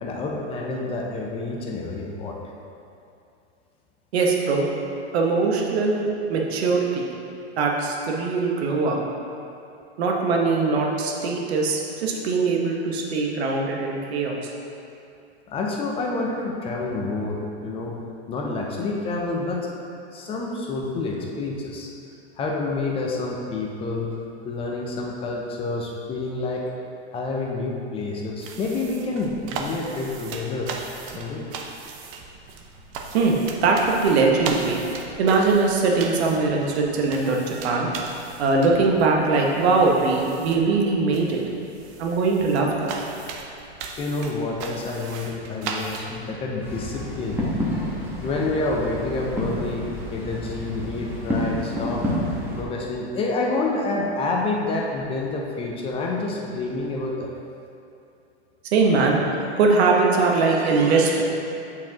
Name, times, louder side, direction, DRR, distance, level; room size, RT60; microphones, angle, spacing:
voice 1, 0.0-2.4 15.5-18.0 18.3-19.7 20.1-21.9 22.4-24.1 24.4-26.6 27.1-30.7 31.2-31.4 44.0-47.4 48.2-52.0 52.6-57.3, left 3 dB, 15° left, -1 dB, 0.4 m, -28 dB
voice 2, 4.1-4.7 5.1-7.1 7.6-9.0 10.0-14.4 33.1-34.8 35.2-37.9 38.4-41.4 42.0-42.9 58.7-61.2, right 4 dB, 65° right, 0 dB, 1.1 m, -21 dB
sound 1, 28.4-46.3, right 4 dB, 35° right, 0.5 m, -38 dB
sound 2, 46.6-52.6, equal, 5° right, 1.0 m, -29 dB
8.4 x 4.5 x 2.8 m, 2.6 s
hypercardioid pair, 130°, 34 cm